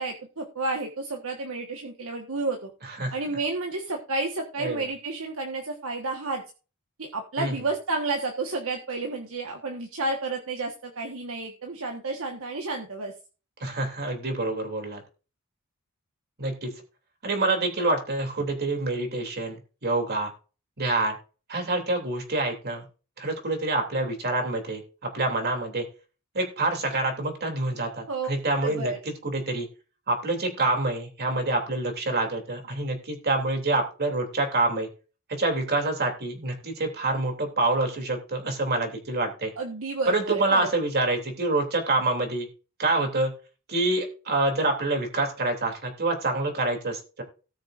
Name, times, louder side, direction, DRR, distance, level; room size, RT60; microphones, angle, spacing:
voice 1, 0.0-2.7 3.1-6.4 7.0-13.1 28.1-28.3 28.6-29.0 39.6-40.7, right 3 dB, 65° right, 2 dB, 1.4 m, -31 dB
voice 2, 13.6-15.0 16.4-16.7 17.2-19.6 19.8-20.3 20.8-21.1 21.5-22.9 23.2-24.8 25.1-25.8 26.3-28.9 29.2-29.7 30.1-34.9 35.4-39.5 40.1-42.5 42.8-43.3 43.7-47.2, right 2 dB, 45° right, 3 dB, 3.0 m, -26 dB
18.5 x 6.5 x 2.6 m, 0.34 s
head